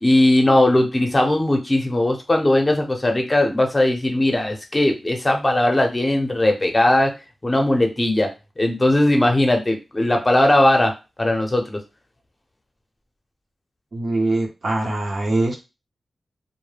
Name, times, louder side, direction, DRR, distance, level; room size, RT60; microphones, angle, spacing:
voice 1, 0.0-7.1 7.4-8.3 8.6-10.9 11.2-11.8, left 1 dB, 30° left, 3 dB, 0.6 m, -18 dB
voice 2, 13.9-15.6, right 2 dB, 65° right, 0 dB, 0.7 m, -22 dB
2.2 x 2.1 x 3.2 m, 0.27 s
cardioid pair, 55°, 0 cm